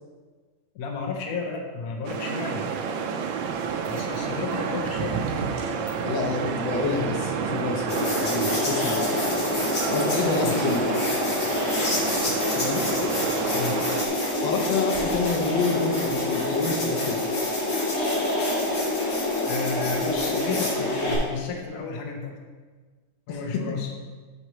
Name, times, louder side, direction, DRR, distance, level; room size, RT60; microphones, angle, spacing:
voice 1, 0.7-2.7 3.9-5.2 10.4-10.5 13.5-13.8 19.5-22.4 23.3-23.9, left 4 dB, 60° left, 1 dB, 1.3 m, -32 dB
sound 1, 2.0-14.1, right 6 dB, 85° right, 1.4 m, -30 dB
voice 2, 6.0-9.2 9.9-10.9 12.6-12.8 14.4-17.2 23.3-23.6, left 4 dB, 80° left, 2 dB, 1.5 m, -28 dB
sound 2, 7.9-21.2, left 1 dB, 45° left, 1.8 m, -26 dB
9.7 x 5.5 x 3.1 m, 1.4 s
omnidirectional pair, 2.1 m